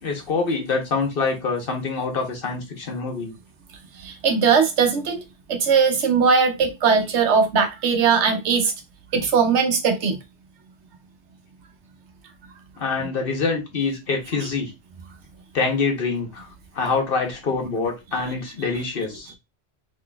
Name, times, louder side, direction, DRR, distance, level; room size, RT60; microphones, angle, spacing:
voice 1, 0.0-3.3 12.8-14.7 15.5-16.5 16.7-19.3, left 4 dB, 55° left, 1.0 m, -25 dB
voice 2, 4.0-5.2 5.5-8.7 9.1-10.2, right 5 dB, 85° right, 1.0 m, -19 dB
3.8 x 3.0 x 2.2 m
omnidirectional pair, 1.2 m